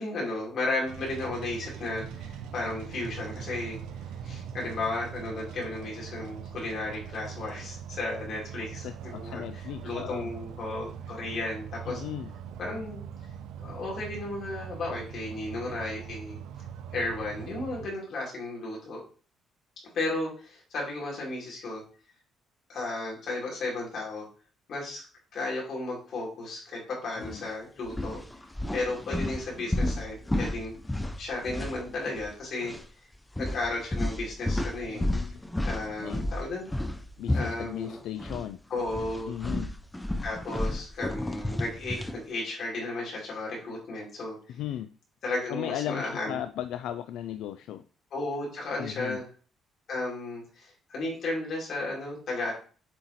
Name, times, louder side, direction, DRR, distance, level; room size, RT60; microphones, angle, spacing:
voice 1, 0.0-3.8 4.2-9.4 9.8-12.0 12.6-13.0 13.6-16.4 16.9-19.0 19.9-21.8 22.7-24.3 24.7-25.0 25.3-28.2 28.7-30.7 31.2-32.7 33.4-35.1 35.6-36.7 37.3-38.0 38.7-39.3 40.2-44.6 45.2-46.4 48.1-49.3 49.9-52.5, left 2 dB, 45° left, -3 dB, 2.5 m, -34 dB
sound 1, 0.9-17.9, right 8 dB, 85° right, 0.6 m, -41 dB
voice 2, 8.8-10.3 11.9-12.3 27.2-27.5 28.7-28.8 34.9-35.4 35.8-36.3 37.2-38.6 39.2-39.7 44.5-44.9 45.5-47.8 48.8-49.2, left 11 dB, 75° left, 10 dB, 0.3 m, -36 dB
sound 2, 27.2-27.4 27.9-32.4 32.6-32.8 33.4-38.5 38.8-42.2, left 1 dB, 5° left, 0.4 m, -32 dB
7.6 x 3.1 x 4.1 m, 0.41 s
cardioid pair, 170°, 0 cm